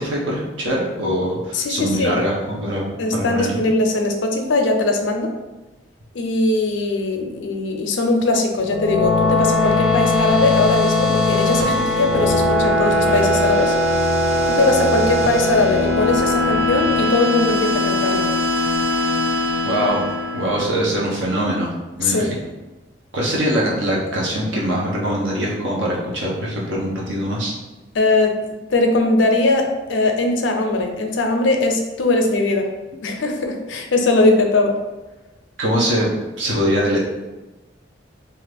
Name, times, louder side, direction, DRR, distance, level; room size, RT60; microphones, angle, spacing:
voice 1, 0.0-3.6 19.6-20.0 20.3-21.7 22.0-22.3 23.1-27.5 35.6-36.1 36.4-37.0, equal, 90° right, -4 dB, 0.9 m, -22 dB
voice 2, 1.5-2.1 3.0-5.3 6.1-13.7 14.5-18.3 22.0-22.3 27.9-28.4 28.7-32.7 33.0-34.8, left 2 dB, 85° left, 4 dB, 0.5 m, -20 dB
sound 1, 8.6-20.9, left 2 dB, 35° right, 0.7 m, -20 dB
2.8 x 2.5 x 3.3 m, 1.1 s
head